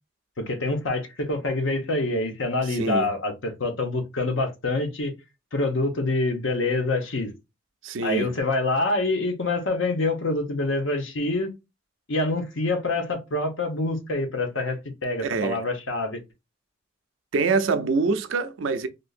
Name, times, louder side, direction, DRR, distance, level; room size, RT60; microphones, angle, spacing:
voice 1, 0.4-5.1 5.5-7.3 8.0-11.5 12.1-16.2, left 2 dB, 85° left, 1.0 m, -26 dB
voice 2, 2.6-3.1 7.8-8.3 15.2-15.6 17.3-18.9, right 4 dB, 80° right, 0.5 m, -25 dB
3.5 x 2.6 x 2.4 m
head